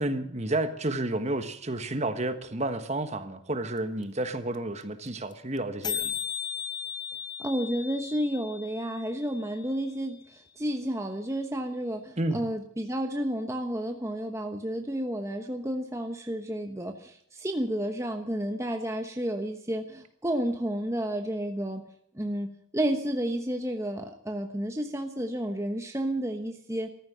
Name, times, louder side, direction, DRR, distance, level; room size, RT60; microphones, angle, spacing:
voice 1, 0.0-6.2 12.2-12.4, right 2 dB, 35° right, 1.4 m, -31 dB
sound 1, 3.8-3.9 4.0-4.1 4.3-4.6 4.8-4.9 5.1-5.3 5.6-5.7 5.8-9.8, left 8 dB, 20° left, 0.6 m, -36 dB
voice 2, 7.4-21.8 22.1-26.9, right 1 dB, 15° right, 1.1 m, -31 dB
14.5 x 14.0 x 6.9 m
head